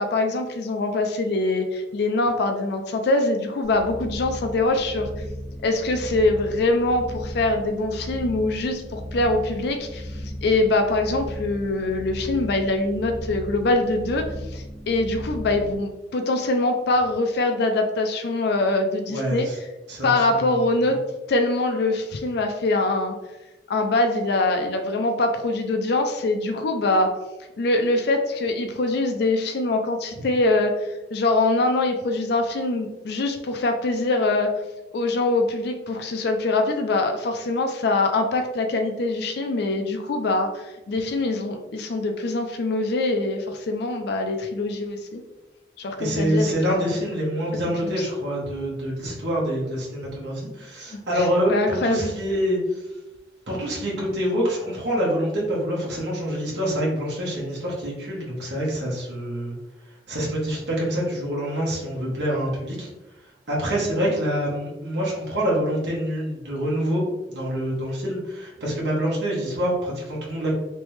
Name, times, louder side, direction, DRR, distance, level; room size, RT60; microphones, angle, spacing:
voice 1, 0.0-5.1 5.6-19.5 20.0-21.0 21.3-23.1 23.7-27.2 27.6-34.5 34.9-45.2 45.8-47.0 47.8-48.1 50.9-52.1, left 2 dB, 65° left, 5 dB, 0.4 m, -23 dB
sound 1, 3.6-15.7, equal, 50° right, 1.2 m, -36 dB
voice 2, 19.1-19.6 19.9-20.4 46.0-52.8 53.5-59.5 60.1-62.9 63.5-67.0 67.3-70.5, equal, 70° right, -5 dB, 1.1 m, -26 dB
3.3 x 3.0 x 3.1 m, 1.0 s
head